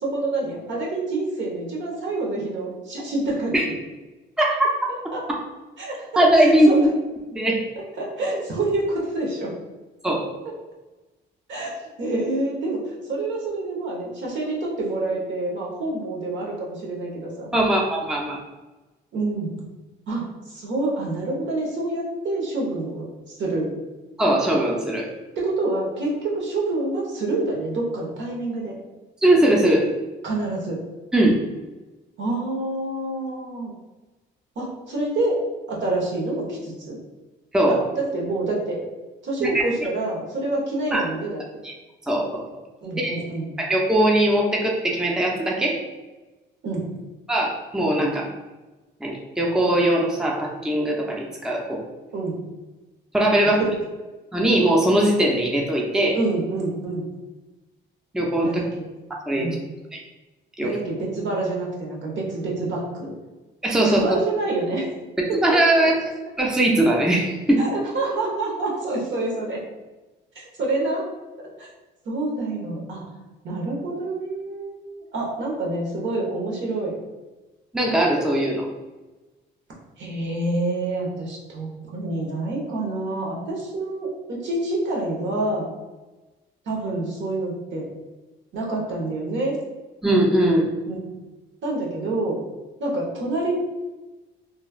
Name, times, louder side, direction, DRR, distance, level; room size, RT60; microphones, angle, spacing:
voice 1, 0.0-3.5 5.1-5.2 5.8-6.8 8.0-9.5 11.5-17.5 19.1-19.5 20.1-23.7 25.4-28.7 30.2-30.8 32.2-33.7 34.6-35.4 35.7-37.0 37.7-38.8 39.2-41.4 42.8-43.5 46.6-46.9 52.1-52.4 53.7-53.8 56.1-57.0 58.4-58.9 59.3-59.6 60.6-63.1 63.8-64.9 65.3-65.9 67.6-69.6 70.3-71.0 71.6-71.7 72.0-73.0 73.4-76.9 80.0-85.7 86.7-87.9 88.5-89.6 90.8-91.0 91.6-92.4 92.8-93.6, right 2 dB, 70° right, -2 dB, 0.9 m, -27 dB
voice 2, 4.4-4.7 6.2-6.8 7.3-7.6 10.0-10.2 17.5-18.4 24.2-25.1 29.2-29.9 31.1-31.4 37.5-37.8 39.4-39.6 40.9-41.0 41.6-41.7 42.1-42.4 43.0-43.1 43.6-45.8 47.3-48.3 49.0-51.8 53.1-53.6 54.3-56.2 58.1-58.6 59.3-59.5 59.9-60.0 60.6-60.7 63.6-64.1 65.2-65.9 66.4-67.7 77.7-78.7 90.0-90.7, right 1 dB, 5° right, -1 dB, 0.5 m, -20 dB
3.0 x 2.3 x 2.3 m, 1.1 s
cardioid pair, 90°, 20 cm